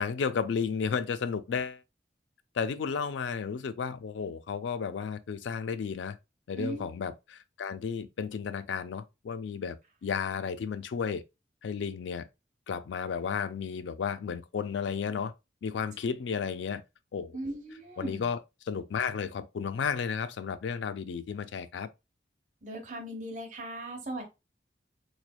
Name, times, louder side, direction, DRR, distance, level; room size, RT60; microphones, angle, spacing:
voice 1, 0.0-1.8 2.5-6.2 6.5-9.8 10.0-11.2 11.6-12.3 12.7-15.3 15.6-16.8 17.1-17.4 18.0-21.9, left 6 dB, 85° left, 0.4 m, -33 dB
voice 2, 6.6-6.9 17.3-18.3 22.6-24.2, right 1 dB, 45° right, 1.1 m, -38 dB
4.0 x 3.1 x 2.2 m
head